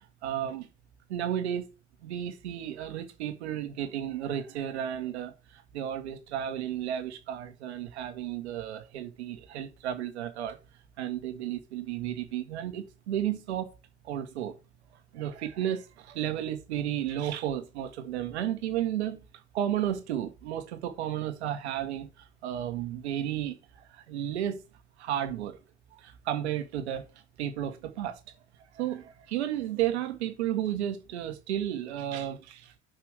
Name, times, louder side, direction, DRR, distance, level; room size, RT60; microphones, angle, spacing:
voice 1, 0.2-0.7 1.1-1.7 2.0-5.3 5.7-10.6 11.0-13.7 14.0-14.5 15.1-19.2 19.5-22.1 22.4-23.5 24.1-24.6 25.0-25.6 25.9-27.1 27.4-28.1 28.8-32.7, right 11 dB, 70° right, 1.5 m, -33 dB
5.9 x 5.1 x 6.4 m
figure-of-eight pair, 60°, 34 cm